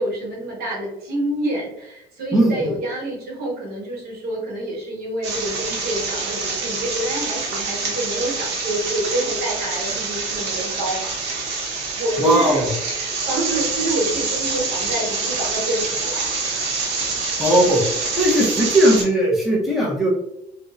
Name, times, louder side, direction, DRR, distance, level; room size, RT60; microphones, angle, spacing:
voice 1, 0.0-11.6 11.9-16.4, right 1 dB, 65° right, -3 dB, 1.1 m, -27 dB
voice 2, 2.3-2.7 12.2-12.7 17.4-17.8 18.2-20.1, right 1 dB, ahead, -3 dB, 0.6 m, -18 dB
sound 1, 5.2-19.0, right 4 dB, 80° right, 0.6 m, -26 dB
2.6 x 2.0 x 2.4 m, 0.82 s
cardioid pair, 110°, 17 cm